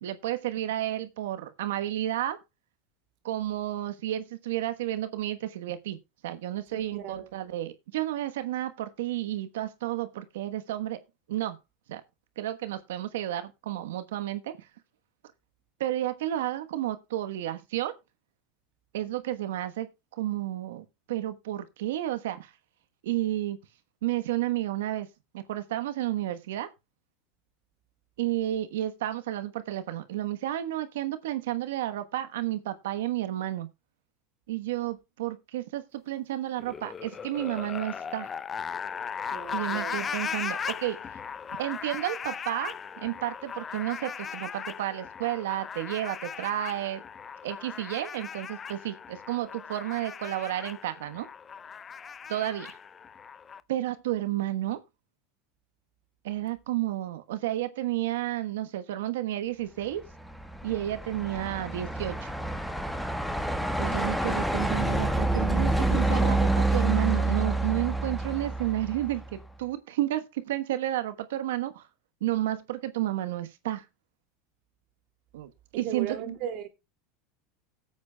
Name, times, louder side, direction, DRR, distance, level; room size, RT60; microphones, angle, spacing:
voice 1, 0.0-2.4 3.2-6.0 6.2-11.0 11.3-11.6 11.9-12.0 12.4-14.6 15.8-17.9 18.9-22.5 23.0-23.6 24.0-25.1 25.3-26.7 28.2-33.7 34.5-38.3 39.5-41.0 41.6-47.0 47.4-51.3 52.3-52.8 53.7-54.8 56.2-60.0 60.6-62.3 63.8-71.9 72.2-73.8 75.3-75.5 75.7-76.2, right 14 dB, 80° right, 1.2 m, -31 dB
voice 2, 6.7-7.3 39.3-40.0 75.7-76.7, right 9 dB, 60° right, 2.7 m, -36 dB
sound 1, 36.6-53.6, left 6 dB, 30° left, 0.6 m, -38 dB
Truck, 60.0-69.4, right 2 dB, ahead, 1.4 m, -28 dB
18.0 x 8.2 x 2.3 m
supercardioid pair, 105°, 0 cm